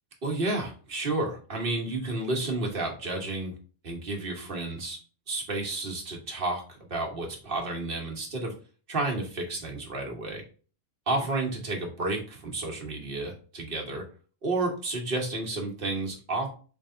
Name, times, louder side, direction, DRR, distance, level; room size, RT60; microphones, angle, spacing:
voice 1, 0.2-3.5 3.8-5.0 5.3-8.5 8.9-10.4 11.1-14.0 14.4-16.5, right 2 dB, 55° right, 1 dB, 1.3 m, -31 dB
3.4 x 3.2 x 3.8 m, 0.38 s
omnidirectional pair, 1.1 m